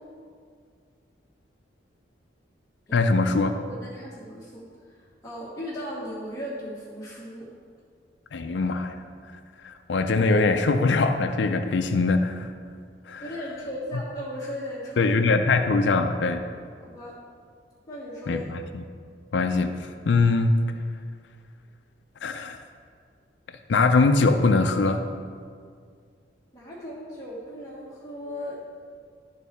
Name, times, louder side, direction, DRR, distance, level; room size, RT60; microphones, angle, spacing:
voice 1, 2.9-3.5 8.3-8.9 9.6-12.5 13.1-13.3 15.0-16.4 18.3-18.8 19.3-19.8 20.0-20.5 22.2-22.6 23.7-25.0, left 3 dB, 70° left, 6 dB, 0.5 m, -22 dB
voice 2, 3.5-4.6 5.2-7.5 13.2-15.1 16.8-17.1 17.9-18.5 26.5-28.6, equal, 20° left, -10 dB, 1.2 m, -36 dB
12.0 x 4.0 x 4.2 m, 2.1 s
head